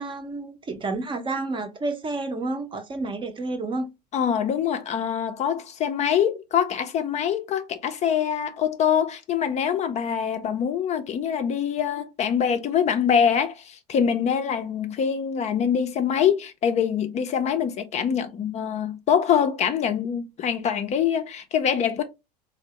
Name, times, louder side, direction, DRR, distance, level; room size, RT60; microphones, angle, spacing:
voice 1, 0.0-3.9, right 3 dB, 25° right, 0.6 m, -30 dB
voice 2, 4.1-22.0, left 8 dB, 30° left, 0.4 m, -24 dB
3.4 x 2.0 x 2.8 m
hypercardioid pair, 80°, 21 cm